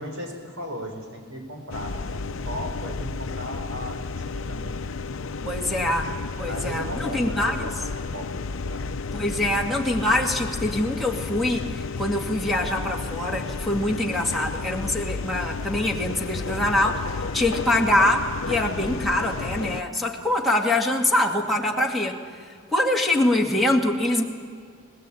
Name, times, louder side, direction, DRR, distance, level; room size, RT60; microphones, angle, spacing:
voice 1, 0.0-4.8 5.6-5.9 6.5-8.4 8.6-8.9, equal, 80° right, 4 dB, 4.6 m, -36 dB
sound 1, 1.7-19.8, left 4 dB, 70° left, 0.6 m, -32 dB
voice 2, 5.4-6.1 6.4-7.7 9.1-22.2 22.7-24.2, left 1 dB, ahead, -3 dB, 2.2 m, -24 dB
21.0 x 21.0 x 8.6 m, 2.2 s
head